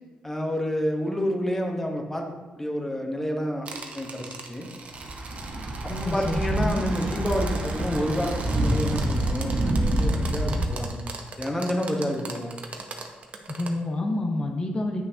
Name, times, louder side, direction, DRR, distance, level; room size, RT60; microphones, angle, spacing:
voice 1, 0.2-2.2 2.6-3.7 3.9-4.7 6.0-11.0 11.4-12.5, equal, 10° left, 2 dB, 1.2 m, -29 dB
sound 1, 3.7-13.7, right 3 dB, 45° right, 0.9 m, -39 dB
Thunder / Bicycle, 4.9-10.7, right 1 dB, 65° right, 1.7 m, -27 dB
voice 2, 5.9-6.9 13.5-15.0, left 2 dB, 35° left, 1 dB, 1.0 m, -28 dB
9.3 x 6.2 x 2.9 m, 1.2 s
cardioid pair, 95°, 3 cm